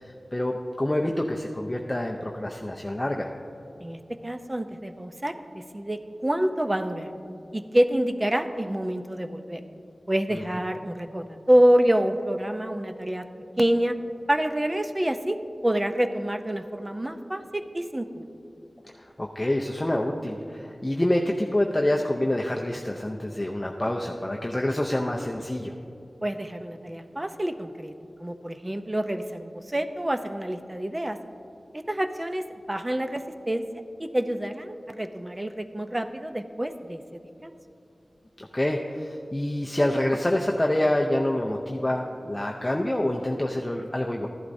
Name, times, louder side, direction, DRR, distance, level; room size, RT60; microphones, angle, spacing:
voice 1, 0.0-3.3 10.3-10.4 19.2-25.7 38.4-44.3, left 1 dB, 20° left, 0 dB, 0.5 m, -27 dB
voice 2, 3.8-7.1 7.5-9.6 10.1-13.3 13.6-13.9 14.3-18.3 26.2-27.9 28.2-31.2 31.7-33.6 34.0-37.6, right 1 dB, 20° right, 8 dB, 0.5 m, -27 dB
14.0 x 11.5 x 2.7 m, 2.7 s
wide cardioid pair, 85°, 0 cm